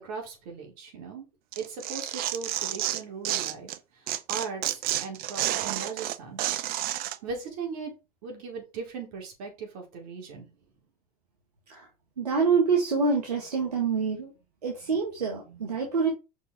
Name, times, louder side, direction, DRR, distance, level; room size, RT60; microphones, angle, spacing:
voice 1, 0.0-1.3 1.6-3.7 4.3-6.4 7.2-7.9 8.2-10.5, right 5 dB, 65° right, 1 dB, 4.4 m, -38 dB
Tearing, 1.5-3.8 4.1-7.2, right 14 dB, 50° right, 0.8 m, -30 dB
voice 2, 12.2-14.3 14.6-16.1, right 5 dB, 85° right, 0 dB, 1.9 m, -26 dB
6.0 x 5.5 x 5.0 m, 0.28 s
hypercardioid pair, 85°, 20 cm